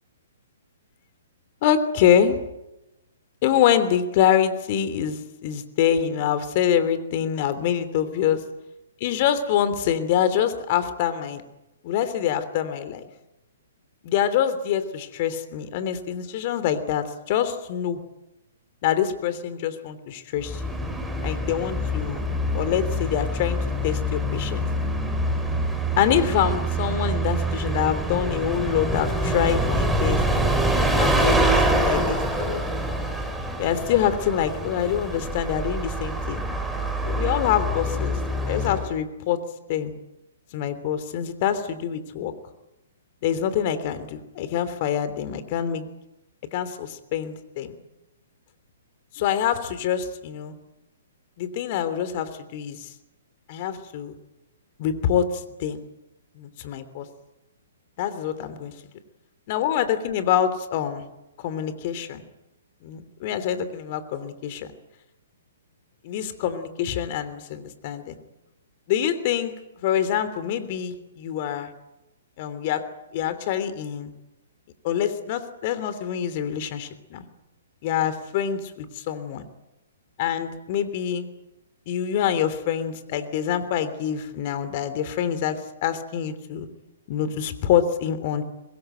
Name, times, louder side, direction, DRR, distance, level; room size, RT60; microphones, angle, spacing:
voice 1, 1.6-2.4 3.4-8.4 9.0-11.4 11.8-13.0 14.0-18.0 18.8-20.7 21.2-22.3 22.5-24.7 26.0-30.2 31.0-32.6 33.6-36.5 37.0-38.2 38.5-39.4 39.7-39.9 40.5-42.3 43.2-45.9 46.5-47.7 49.1-50.5 51.4-52.9 53.5-54.1 54.8-55.8 56.3-57.1 58.0-58.7 59.5-61.1 61.4-62.2 62.8-64.6 66.0-68.2 68.9-69.5 69.8-71.7 72.4-72.8 73.1-74.1 74.8-77.3 77.8-79.4 80.2-81.3 81.9-86.7 87.1-88.4, left 9 dB, 45° left, 12 dB, 3.1 m, -25 dB
Bus, 20.4-39.0, right 1 dB, ahead, 4.4 m, -25 dB
25.0 x 21.5 x 9.2 m, 0.95 s
figure-of-eight pair, 125°, 0 cm